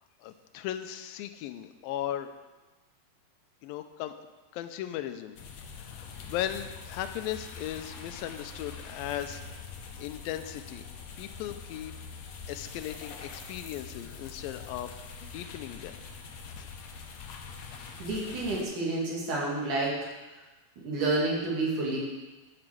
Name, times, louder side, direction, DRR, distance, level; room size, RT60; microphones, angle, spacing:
voice 1, 0.2-2.3 3.6-4.1 4.5-9.4 10.0-10.9 11.2-11.9 12.5-16.0 16.6-16.7, left 12 dB, 85° left, 9 dB, 2.3 m, -37 dB
sound 1, 5.4-18.6, left 5 dB, 70° left, 1.7 m, -44 dB
voice 2, 18.0-20.0 20.8-22.0, right 2 dB, 60° right, -4 dB, 3.8 m, -29 dB
9.7 x 5.8 x 7.6 m, 1.2 s
omnidirectional pair, 4.2 m